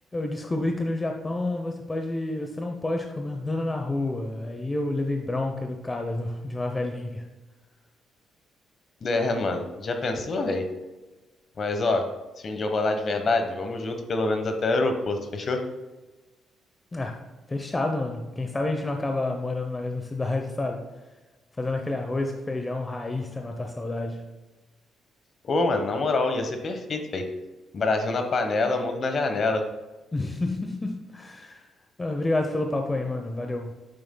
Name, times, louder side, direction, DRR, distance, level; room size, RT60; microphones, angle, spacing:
voice 1, 0.1-7.3 16.9-20.9 21.6-24.3 30.1-31.7 32.0-33.7, left 2 dB, 20° left, 4 dB, 0.7 m, -29 dB
voice 2, 9.0-10.7 11.6-12.1 12.4-15.6 25.4-27.3 27.7-29.6, left 3 dB, 45° left, 6 dB, 1.1 m, -26 dB
8.9 x 6.9 x 2.2 m, 1.2 s
cardioid pair, 90°, 0 cm